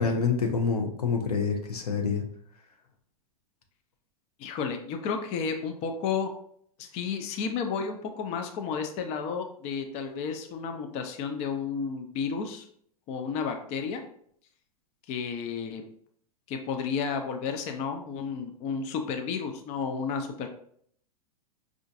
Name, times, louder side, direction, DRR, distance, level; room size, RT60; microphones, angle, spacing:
voice 1, 0.0-2.2, left 5 dB, 85° left, 3 dB, 0.7 m, -27 dB
voice 2, 4.4-6.3 6.8-12.7 13.1-14.0 15.1-15.8 16.5-20.5, left 6 dB, 35° left, 5 dB, 0.5 m, -32 dB
4.5 x 2.5 x 2.5 m, 0.64 s
hypercardioid pair, 105°, 19 cm